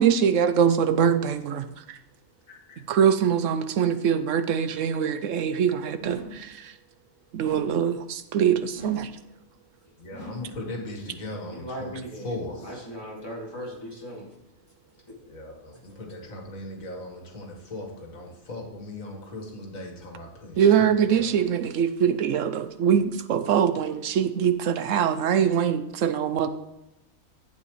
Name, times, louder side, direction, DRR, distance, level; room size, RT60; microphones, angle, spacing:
voice 1, 0.0-2.0 2.9-6.7 7.3-9.1 20.6-26.5, right 8 dB, 75° right, 11 dB, 0.9 m, -23 dB
voice 2, 2.5-2.8 10.0-12.8 15.2-21.3, left 1 dB, 85° left, 2 dB, 2.1 m, -38 dB
sound 1, 6.0-6.5 7.4-7.9 8.7-9.2 10.1-10.6, left 1 dB, 40° right, 4.0 m, -42 dB
voice 3, 11.3-14.3, equal, 20° left, -4 dB, 2.7 m, -38 dB
11.0 x 8.4 x 3.1 m, 0.92 s
omnidirectional pair, 1.4 m